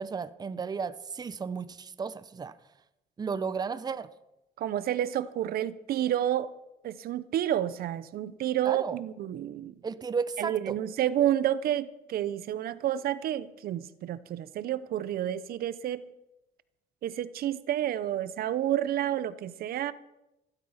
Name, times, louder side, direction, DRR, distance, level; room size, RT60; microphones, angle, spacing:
voice 1, 0.0-2.5 3.2-4.1 8.6-9.0 9.8-10.8, right 5 dB, 25° right, 14 dB, 0.7 m, -34 dB
voice 2, 4.6-6.5 6.8-9.7 10.4-16.1 17.0-19.9, right 11 dB, 65° right, 16 dB, 0.8 m, -30 dB
16.5 x 12.0 x 5.7 m, 0.92 s
cardioid pair, 110°, 17 cm